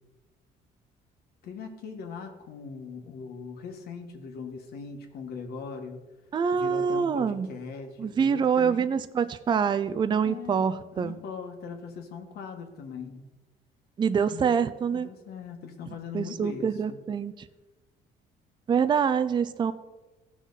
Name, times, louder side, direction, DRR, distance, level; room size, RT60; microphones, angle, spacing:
voice 1, 1.4-6.0 6.5-8.9 10.2-10.6 10.9-13.2 14.3-14.6 14.9-17.0, left 5 dB, 70° left, 4 dB, 1.6 m, -40 dB
voice 2, 6.3-7.5 8.0-11.1 14.0-15.1 16.1-17.5 18.7-19.7, right 6 dB, 25° right, 12 dB, 0.4 m, -25 dB
15.0 x 6.1 x 4.1 m, 1.2 s
cardioid pair, 110°, 17 cm